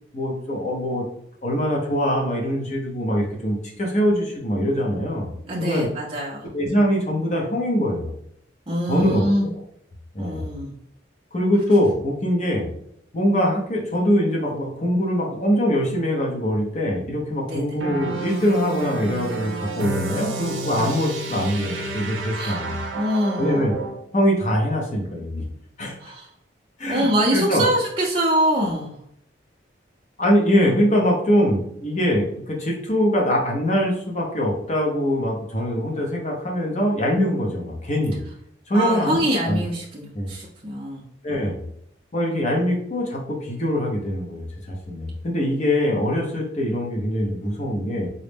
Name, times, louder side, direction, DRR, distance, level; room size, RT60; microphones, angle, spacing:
voice 1, 0.1-1.0 1.4-5.3 5.6-5.9 6.5-8.1 8.9-9.5 10.1-10.5 11.3-12.7 13.1-22.8 23.4-23.7 24.1-25.4 25.8-26.1 26.8-27.6 30.2-38.2 38.7-39.6 40.1-40.3 41.2-41.6 42.1-48.1, equal, 35° left, -1 dB, 0.6 m, -23 dB
voice 2, 5.5-6.5 8.7-9.5 10.2-10.7 17.5-17.6 20.8-20.9 22.3-22.6 22.9-23.6 26.0-26.3 26.9-28.9 38.7-41.0, right 1 dB, 30° right, -3 dB, 0.5 m, -24 dB
sound 1, 17.8-24.0, right 2 dB, 90° right, 0.6 m, -30 dB
3.9 x 2.0 x 3.4 m, 0.71 s
head